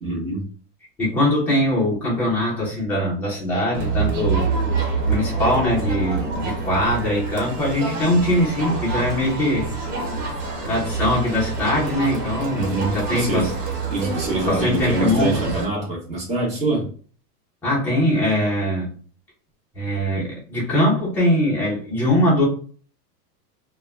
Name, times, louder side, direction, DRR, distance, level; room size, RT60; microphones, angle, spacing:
voice 1, 0.0-0.4 12.5-13.5 13.9-16.9, right 2 dB, 15° right, -3 dB, 0.7 m, -25 dB
voice 2, 1.0-4.5 4.8-9.7 10.6-13.5 14.5-15.4 17.6-18.9 19.7-22.4, left 1 dB, 5° left, -6 dB, 0.3 m, -22 dB
Crowd, 3.7-15.6, right 4 dB, 80° right, 1.1 m, -26 dB
2.1 x 2.1 x 3.3 m, 0.43 s
supercardioid pair, 135°, 47 cm